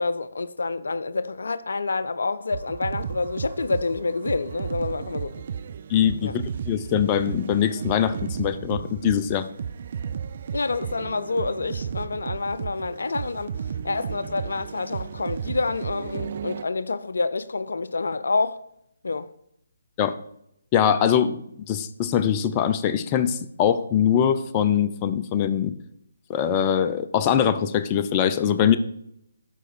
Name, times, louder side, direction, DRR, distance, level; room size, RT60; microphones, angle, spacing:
voice 1, 0.0-5.3 6.2-6.3 10.5-13.5 13.8-18.6 19.0-19.3, left 3 dB, 70° left, 0.5 m, -28 dB
sound 1, 2.5-16.6, right 7 dB, 50° right, 0.4 m, -34 dB
voice 2, 5.9-9.5 20.0-20.2 20.7-21.4 21.7-25.7 26.3-28.8, left 9 dB, 25° left, 0.6 m, -22 dB
12.0 x 4.9 x 4.3 m
figure-of-eight pair, 145°, 0 cm